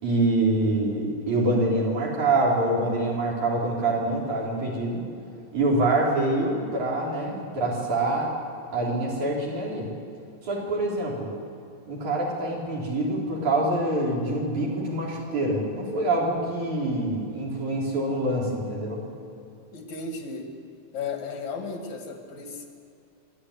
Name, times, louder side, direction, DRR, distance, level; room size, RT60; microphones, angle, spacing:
voice 1, 0.0-5.0 5.5-8.3 8.7-9.9 10.4-11.3 11.9-19.0, right 2 dB, 75° right, -3 dB, 5.3 m, -25 dB
voice 2, 19.7-20.5 20.9-22.7, left 4 dB, 70° left, 3 dB, 3.4 m, -34 dB
26.5 x 10.5 x 9.8 m, 2.5 s
omnidirectional pair, 3.4 m